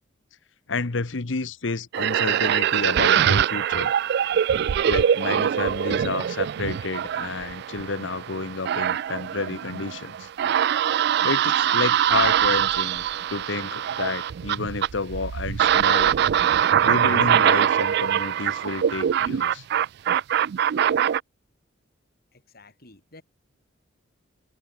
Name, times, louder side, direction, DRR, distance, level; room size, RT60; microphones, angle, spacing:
voice 1, 0.7-3.9 4.8-10.3 11.2-16.2 16.8-19.6, left 3 dB, 75° left, 1.0 m, -30 dB
sound 1, 1.9-21.2, right 9 dB, 60° right, 0.3 m, -23 dB
voice 2, 22.3-23.2, left 2 dB, 55° left, 5.6 m, -51 dB
head